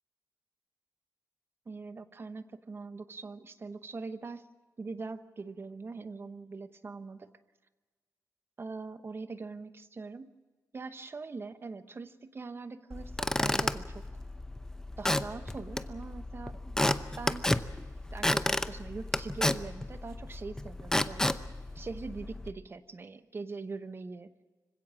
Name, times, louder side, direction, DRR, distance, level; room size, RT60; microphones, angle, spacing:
voice 1, 1.7-4.5 4.8-7.3 8.6-10.3 10.7-14.0 15.0-17.5 18.1-21.4 21.7-24.3, right 4 dB, 35° right, 11 dB, 1.0 m, -42 dB
Squeak / Wood, 12.9-22.5, left 1 dB, 10° left, 0.7 m, -32 dB
25.5 x 16.5 x 7.4 m, 1.4 s
wide cardioid pair, 125°, 6 cm